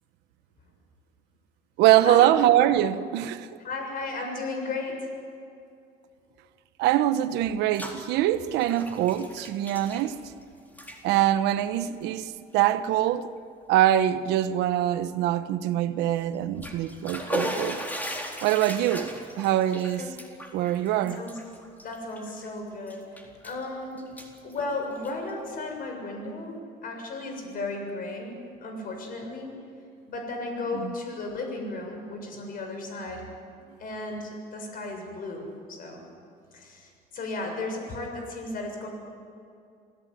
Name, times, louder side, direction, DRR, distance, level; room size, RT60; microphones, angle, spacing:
voice 1, 1.8-3.5 6.8-10.2 11.0-13.3 13.7-17.8 18.4-20.0 20.5-21.2 30.7-30.9, right 12 dB, 90° right, 1.1 m, -23 dB
voice 2, 3.6-5.1 20.0-20.1 20.9-21.4 21.8-23.0 23.4-24.0 24.4-29.5 30.1-33.2 33.8-36.0 36.5-38.9, left 2 dB, 55° left, 7.1 m, -35 dB
Bathtub (filling or washing), 7.4-8.0 8.3-10.4 10.7-11.0 11.7-11.9 12.5-12.6 13.1-13.2 16.3-22.5 22.9-23.6 24.0-25.3, equal, 10° left, 4.2 m, -37 dB
27.5 x 17.0 x 9.4 m
cardioid pair, 110°, 17 cm